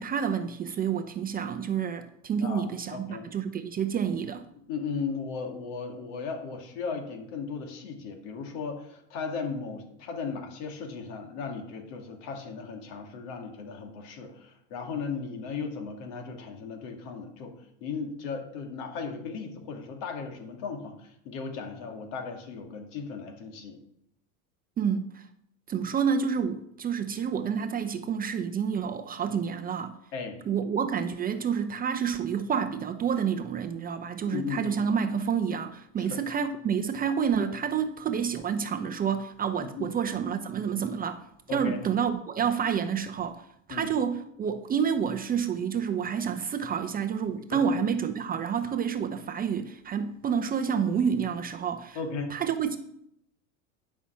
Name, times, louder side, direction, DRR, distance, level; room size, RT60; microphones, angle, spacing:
voice 1, 0.0-4.5 24.8-25.3 25.7-29.9 30.5-41.2 41.5-52.0 52.3-52.8, right 7 dB, 20° right, 0.6 m, -29 dB
voice 2, 2.9-3.2 4.7-17.5 17.8-23.8 30.1-30.4 34.3-34.8 36.0-36.2 39.6-39.9 41.5-41.8 43.7-43.9 47.5-47.6 51.9-52.4, left 5 dB, 60° left, 2.3 m, -36 dB
11.0 x 5.8 x 5.7 m
hypercardioid pair, 95°, 40 cm